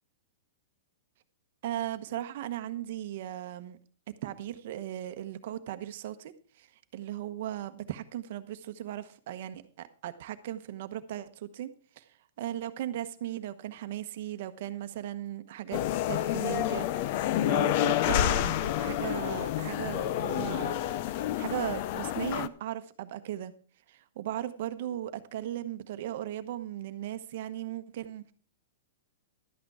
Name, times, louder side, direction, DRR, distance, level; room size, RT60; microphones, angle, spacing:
voice 1, 1.6-3.8 4.2-11.7 12.0-15.8 16.1-20.8 21.4-23.5 23.9-28.3, right 12 dB, 45° right, 1.0 m, -37 dB
sound 1, 15.7-22.5, left 12 dB, 35° left, 0.5 m, -29 dB
12.0 x 8.8 x 4.7 m
supercardioid pair, 170°, 0 cm